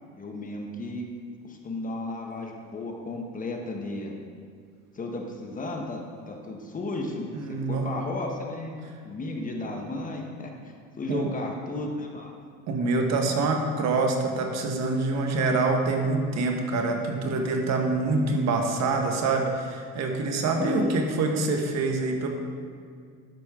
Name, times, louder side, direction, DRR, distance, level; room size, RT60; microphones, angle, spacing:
voice 1, 0.2-1.1 1.4-4.2 4.9-12.3 20.5-21.0, left 2 dB, 25° left, 1 dB, 1.0 m, -34 dB
voice 2, 7.3-7.9 11.1-11.3 12.7-22.3, right 3 dB, 55° right, 3 dB, 1.3 m, -26 dB
11.5 x 6.3 x 3.6 m, 2.2 s
cardioid pair, 130°, 32 cm